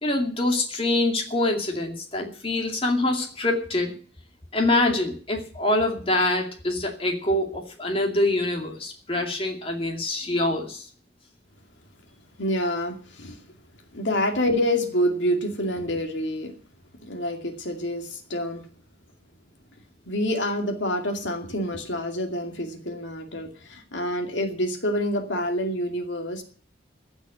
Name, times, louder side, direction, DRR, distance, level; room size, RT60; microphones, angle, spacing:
voice 1, 0.0-3.9 4.5-10.9, left 2 dB, 30° left, 2 dB, 2.4 m, -25 dB
voice 2, 12.4-13.4 13.9-16.5 17.0-18.7 20.1-26.4, equal, 80° left, 4 dB, 2.4 m, -27 dB
15.5 x 6.2 x 9.8 m, 0.43 s
head